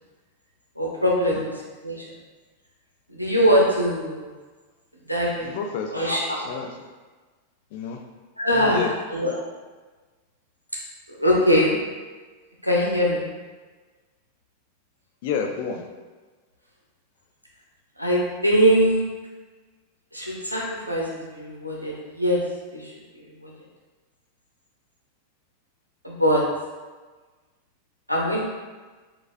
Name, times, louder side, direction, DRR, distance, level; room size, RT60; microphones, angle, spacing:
voice 1, 0.8-2.0 3.1-4.3 5.1-5.6 5.9-6.5 8.4-8.9 9.1-9.3 11.1-11.8 12.6-13.3 18.0-19.0 20.1-22.4 22.7-23.5 26.0-26.4 28.1-28.4, equal, 90° right, -4 dB, 0.6 m, -22 dB
voice 2, 5.3-5.9 6.4-6.9 7.7-8.0 8.5-8.9 15.2-15.8, left 6 dB, 50° left, 3 dB, 0.4 m, -30 dB
4.0 x 2.3 x 2.5 m, 1.3 s
figure-of-eight pair, 90°, 0 cm